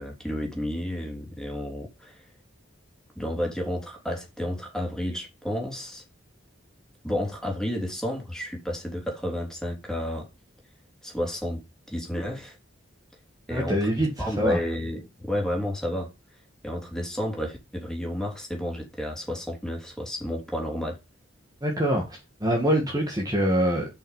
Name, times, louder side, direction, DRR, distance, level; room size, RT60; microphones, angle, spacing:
voice 1, 0.0-2.2 3.1-6.0 7.0-10.3 11.0-11.6 11.9-12.6 13.5-16.1 16.6-21.0, left 1 dB, 5° left, 3.2 m, -31 dB
voice 2, 13.5-14.6 21.6-22.0 22.4-23.9, equal, 20° right, 2.0 m, -24 dB
7.1 x 5.8 x 5.7 m
head